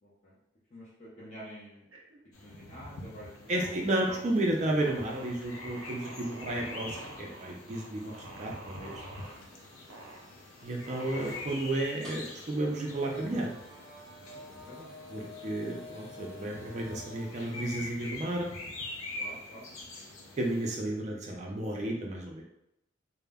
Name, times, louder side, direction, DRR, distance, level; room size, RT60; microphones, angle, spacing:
voice 1, 0.0-0.4 0.7-1.9 2.4-3.3 3.6-4.2 6.5-6.7 8.0-8.1 9.2-9.5 14.5-14.9 19.1-19.7, equal, 35° left, -8 dB, 0.5 m, -49 dB
sound 1, 1.9-2.7 3.0-3.5 3.9-4.3 4.8-9.4 9.9-10.2 10.8-11.8, right 2 dB, 90° right, 0.5 m, -48 dB
sound 2, 2.3-20.8, left 2 dB, 90° left, 0.5 m, -45 dB
voice 2, 3.5-8.1 8.4-9.0 10.6-13.5 15.1-18.5 20.4-22.4, right 1 dB, 35° right, 0 dB, 0.3 m, -32 dB
sound 3, 9.1-17.9, left 2 dB, ahead, 0.7 m, -51 dB
2.0 x 2.0 x 3.4 m, 0.82 s
head